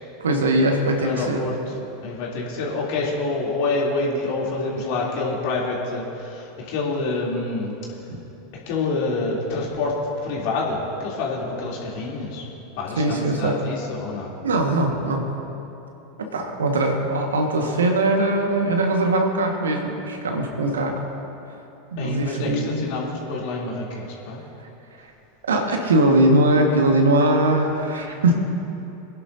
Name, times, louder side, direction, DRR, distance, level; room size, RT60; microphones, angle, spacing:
voice 1, 0.2-1.4 13.0-13.6 14.4-15.2 16.2-21.0 21.9-22.9 25.5-28.4, right 1 dB, 80° right, 2 dB, 1.5 m, -21 dB
voice 2, 1.0-1.7 2.0-7.8 8.7-12.5 12.7-14.3 22.0-24.4, left 3 dB, 60° left, -3 dB, 3.1 m, -27 dB
24.0 x 10.5 x 2.7 m, 3.0 s
hypercardioid pair, 85°, 0 cm